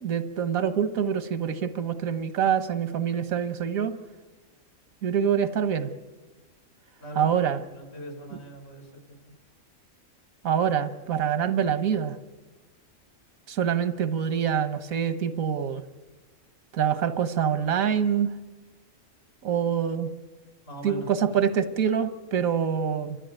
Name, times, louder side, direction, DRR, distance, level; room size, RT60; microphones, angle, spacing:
voice 1, 0.0-4.0 5.0-5.9 7.2-7.6 10.4-12.2 13.5-15.8 16.7-18.3 19.4-20.1 20.8-23.2, right 8 dB, 85° right, 12 dB, 1.6 m, -25 dB
voice 2, 7.0-7.3 7.7-9.2 20.6-21.1, right 1 dB, 60° left, 4 dB, 4.9 m, -41 dB
29.0 x 13.0 x 9.0 m, 1.3 s
omnidirectional pair, 1.4 m